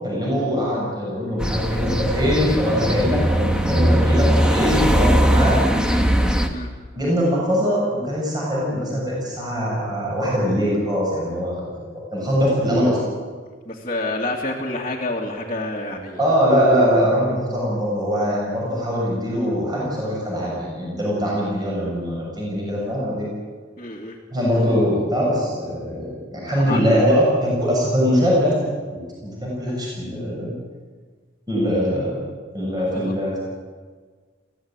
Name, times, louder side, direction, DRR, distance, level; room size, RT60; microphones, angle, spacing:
voice 1, 0.0-5.6 6.9-13.0 16.2-23.3 24.3-28.5 28.9-30.5 31.5-32.2 32.5-33.4, equal, 20° right, -4 dB, 7.0 m, -22 dB
sound 1, 1.4-6.5, equal, 5° right, 1.5 m, -19 dB
voice 2, 13.7-16.3 23.8-24.2 26.5-27.0 32.9-33.1, left 2 dB, 30° left, -3 dB, 2.4 m, -28 dB
22.5 x 16.0 x 9.0 m, 1.5 s
head